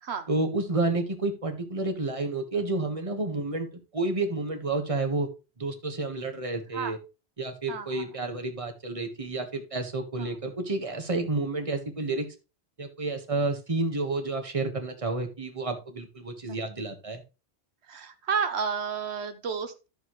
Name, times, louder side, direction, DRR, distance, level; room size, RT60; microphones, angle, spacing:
voice 1, 0.3-5.3 5.6-7.0 7.4-12.3 12.8-17.2, right 2 dB, 30° right, 5 dB, 1.6 m, -30 dB
voice 2, 7.7-8.0 10.2-10.3 16.5-16.6 17.9-19.9, right 6 dB, 85° right, 9 dB, 1.2 m, -31 dB
12.0 x 6.8 x 3.1 m, 0.30 s
omnidirectional pair, 1.1 m